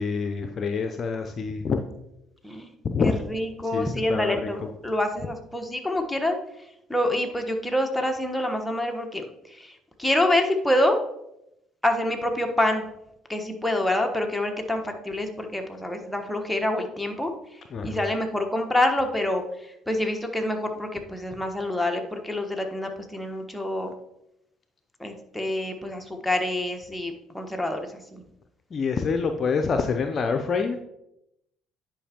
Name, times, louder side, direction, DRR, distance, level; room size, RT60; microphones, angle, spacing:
voice 1, 0.0-1.8 2.8-3.2 3.7-4.7 17.7-18.1 28.7-30.8, left 5 dB, 45° left, 6 dB, 0.5 m, -26 dB
voice 2, 3.0-6.4 6.9-11.0 11.8-12.9 13.3-17.3 17.8-19.4 19.9-23.9 25.0-28.2, left 1 dB, 5° left, 3 dB, 1.2 m, -26 dB
10.0 x 5.1 x 2.9 m, 0.83 s
hypercardioid pair, 55°, 0 cm